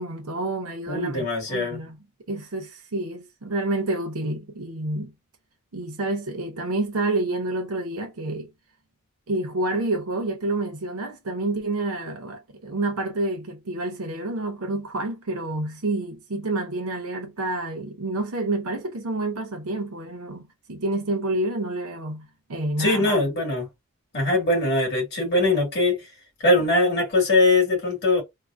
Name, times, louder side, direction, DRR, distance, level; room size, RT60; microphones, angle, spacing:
voice 1, 0.0-2.0 2.3-5.1 5.7-8.5 9.3-20.4 20.7-23.2, right 2 dB, 85° right, 0.7 m, -28 dB
voice 2, 0.9-1.8 22.8-23.7 24.1-26.0 26.4-28.2, left 2 dB, 50° left, 2.0 m, -21 dB
3.7 x 2.1 x 2.5 m
head